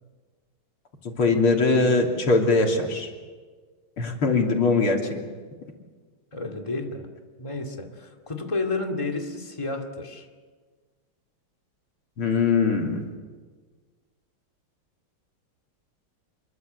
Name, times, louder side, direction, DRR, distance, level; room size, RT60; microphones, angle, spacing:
voice 1, 1.0-3.1 4.0-5.2 12.2-13.1, left 3 dB, 90° left, 1 dB, 4.0 m, -21 dB
voice 2, 6.3-7.1 7.4-10.3, left 3 dB, 15° left, 2 dB, 2.3 m, -31 dB
27.5 x 23.5 x 8.0 m, 1.5 s
omnidirectional pair, 2.3 m